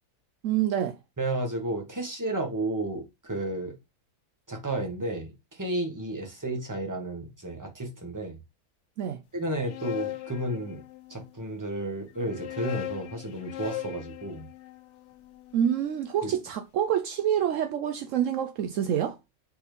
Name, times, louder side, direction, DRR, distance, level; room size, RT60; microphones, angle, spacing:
voice 1, 0.4-1.0 9.0-9.2 15.5-19.2, right 9 dB, 70° right, 0.9 m, -27 dB
voice 2, 1.2-3.8 4.5-8.4 9.3-10.8 11.1-14.5 16.2-16.3, right 1 dB, 15° right, 1.4 m, -32 dB
sound 1, 9.4-11.3 12.1-16.2, left 15 dB, 65° left, 0.9 m, -39 dB
4.4 x 4.2 x 5.1 m
omnidirectional pair, 1.4 m